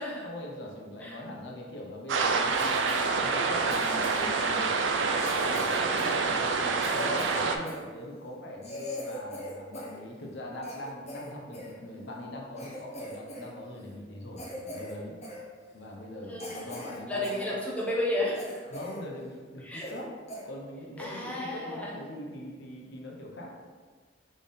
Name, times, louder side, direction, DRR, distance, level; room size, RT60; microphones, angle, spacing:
voice 1, 0.2-4.7 5.3-15.2 15.7-17.6 18.7-20.1 20.4-23.5, left 1 dB, 70° left, -1 dB, 0.8 m, -42 dB
sound 1, 2.1-7.6, right 4 dB, 85° right, 0.4 m, -27 dB
Cough, 2.5-3.1 3.7-4.4 5.1-7.8 8.3-8.4 8.6-10.0 10.3-11.7 12.2-12.3 12.6-13.5 13.8-14.0 14.4-15.0 15.2-15.4 15.9-16.0 16.4-17.5 17.8-17.9 18.4-19.0 19.3-19.4 19.7-20.0 20.3-20.4 21.0-21.2, equal, 40° left, 0.9 m, -40 dB
voice 2, 16.3-16.7 17.1-18.6 19.6-19.9 21.0-22.0, left 1 dB, 10° left, -5 dB, 0.8 m, -32 dB
4.2 x 3.4 x 3.5 m, 1.5 s
head